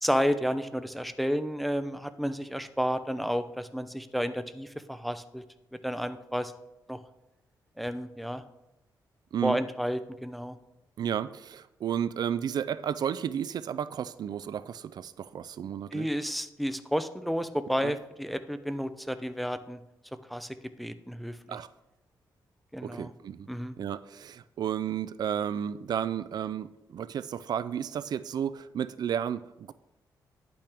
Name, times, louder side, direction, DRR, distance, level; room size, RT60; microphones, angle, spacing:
voice 1, 0.0-5.4 5.8-6.5 6.9-7.0 7.8-8.4 9.4-10.6 15.9-19.8 20.3-21.6 22.7-23.1 23.5-23.8, equal, ahead, 10 dB, 0.5 m, -31 dB
voice 2, 11.0-16.1 17.8-17.9 21.5-21.7 22.8-23.5 23.8-29.7, right 9 dB, 60° right, 14 dB, 0.3 m, -32 dB
10.5 x 8.6 x 3.5 m, 0.94 s
cardioid pair, 120°, 8 cm